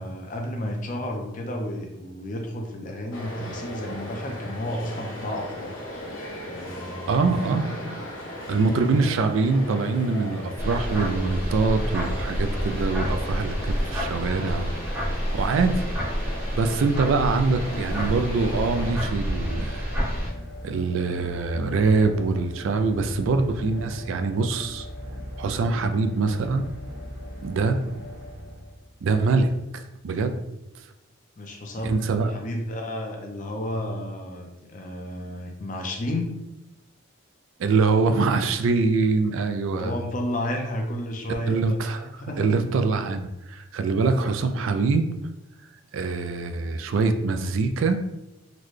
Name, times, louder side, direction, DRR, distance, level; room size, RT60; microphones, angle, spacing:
voice 1, 0.0-5.9 6.4-8.0 8.9-9.0 27.8-27.9 31.4-36.3 39.7-42.5, left 1 dB, 40° left, 2 dB, 0.5 m, -32 dB
sound 1, 3.1-18.9, equal, 70° left, 0.9 m, -37 dB
voice 2, 7.1-8.0 8.5-14.7 15.3-15.8 16.5-19.8 20.6-24.9 25.4-26.6 27.4-27.8 29.0-30.4 31.8-32.3 37.6-39.9 41.5-42.1 42.4-45.1 45.9-48.0, right 4 dB, 70° right, 8 dB, 0.3 m, -24 dB
sound 2, 10.6-20.3, equal, 10° right, 0.6 m, -29 dB
sound 3, 17.2-29.1, left 1 dB, 50° right, 1.0 m, -40 dB
3.9 x 2.1 x 3.1 m, 0.92 s
head